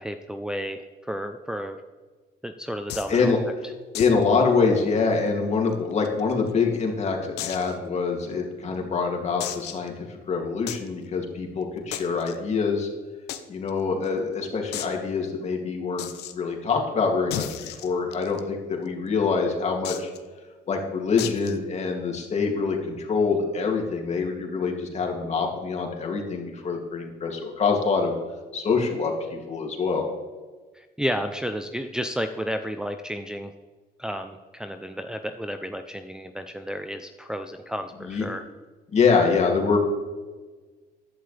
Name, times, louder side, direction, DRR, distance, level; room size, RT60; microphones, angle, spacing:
voice 1, 0.0-1.8 2.4-3.3 30.7-33.5 34.0-38.5, equal, 5° right, 6 dB, 0.6 m, -32 dB
sound 1, 2.9-3.2 3.9-4.2 4.5-4.6 5.0-5.1 5.7-6.5 7.4-7.7 8.3-8.4 9.4-9.9 10.7-10.9 11.9-12.3 13.3-13.4 13.7-13.8 14.0-14.1 14.7-15.0 16.0-16.3 17.3-18.4 19.8-20.2 21.2-21.6, left 12 dB, 80° left, 0.9 m, -34 dB
voice 2, 3.9-12.9 13.5-20.1 20.7-28.1 28.5-30.1 38.0-38.2 38.9-39.8, left 4 dB, 40° left, 1 dB, 2.7 m, -25 dB
14.5 x 11.5 x 3.4 m, 1.3 s
cardioid pair, 110°, 17 cm